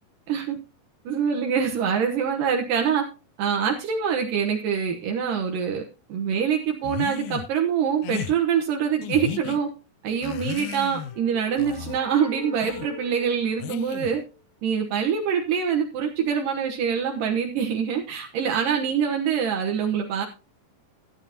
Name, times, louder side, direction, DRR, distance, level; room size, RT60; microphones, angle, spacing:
voice 1, 1.1-3.1 3.4-5.8 6.1-9.7 10.0-14.2 14.6-20.2, right 7 dB, 75° right, 2 dB, 2.7 m, -25 dB
sound 1, 6.8-7.5 8.0-8.4 9.0-9.6 10.2-11.2 11.6-12.0 12.6-12.9 13.6-14.2, left 10 dB, 80° left, 1.8 m, -34 dB
sound 2, 10.4-14.3, left 3 dB, 55° left, 6.7 m, -42 dB
14.5 x 9.7 x 2.9 m, 0.32 s
omnidirectional pair, 4.0 m